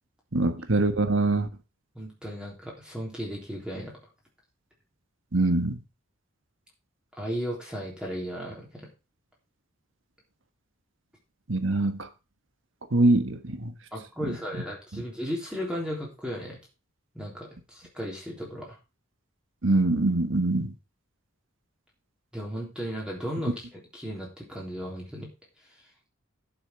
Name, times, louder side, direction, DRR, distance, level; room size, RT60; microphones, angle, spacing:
voice 1, 0.3-1.5 5.3-5.8 11.5-12.1 12.9-13.7 19.6-20.7, right 2 dB, 70° right, 1.4 m, -23 dB
voice 2, 2.0-3.9 7.2-8.7 13.9-16.6 17.1-18.8 22.3-25.3, equal, 5° right, 3.5 m, -35 dB
11.5 x 7.2 x 4.6 m
head